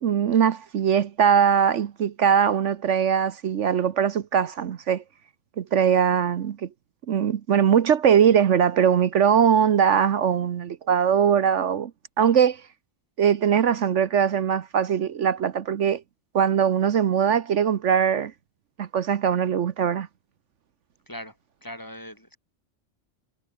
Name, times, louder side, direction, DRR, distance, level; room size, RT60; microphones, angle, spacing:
voice 1, 0.0-5.0 5.6-6.7 7.1-11.9 12.2-12.6 13.2-16.0 16.3-18.3 18.8-20.1, right 8 dB, 70° right, 1.2 m, -21 dB
voice 2, 21.6-22.4, equal, 15° left, 4.7 m, -39 dB
omnidirectional pair, 1.3 m